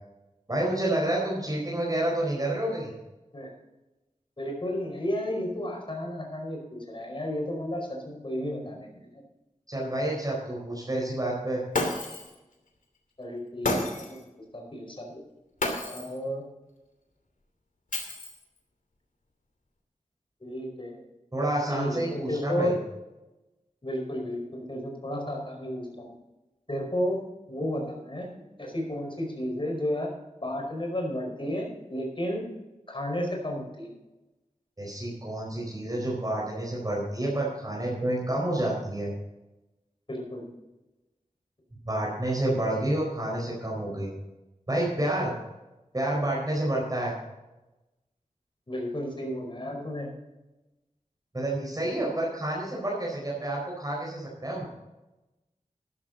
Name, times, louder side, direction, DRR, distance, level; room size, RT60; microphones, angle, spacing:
voice 1, 0.5-2.9 9.7-11.6 21.3-22.8 34.8-39.1 41.9-44.1 44.7-45.3 45.9-47.1 51.3-54.7, right 1 dB, 30° right, -4 dB, 4.7 m, -29 dB
voice 2, 4.4-8.9 13.2-14.2 14.5-15.2 15.8-16.4 20.4-21.0 21.7-22.8 23.8-26.1 26.7-27.2 27.5-28.3 28.6-30.1 30.4-32.4 32.9-33.9 40.1-40.5 48.7-50.1, equal, 40° left, 1 dB, 4.9 m, -32 dB
Shatter, 11.7-12.4 13.6-14.2 15.6-16.2 17.9-18.6, left 2 dB, 75° left, 2.8 m, -30 dB
13.5 x 12.0 x 3.9 m, 1.0 s
wide cardioid pair, 70°, 14 cm